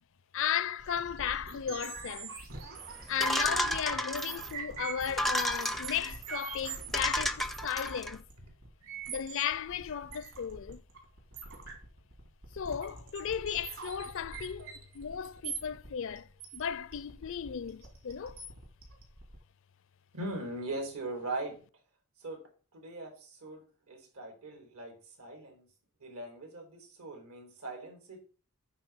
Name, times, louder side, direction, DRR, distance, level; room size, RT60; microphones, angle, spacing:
voice 1, 0.3-2.4 3.1-8.2 9.1-10.8 12.5-18.4, left 8 dB, 60° left, 0.4 m, -35 dB
sound 1, 0.8-19.4, right 5 dB, 65° right, 3.6 m, -44 dB
sound 2, 3.2-4.5 5.1-6.1 6.6-6.7 6.9-8.1, equal, ahead, 0.4 m, -32 dB
voice 2, 20.1-21.6 22.2-22.5 22.7-25.7 26.0-28.2, right 2 dB, 80° right, 3.9 m, -40 dB
9.0 x 4.2 x 7.2 m
head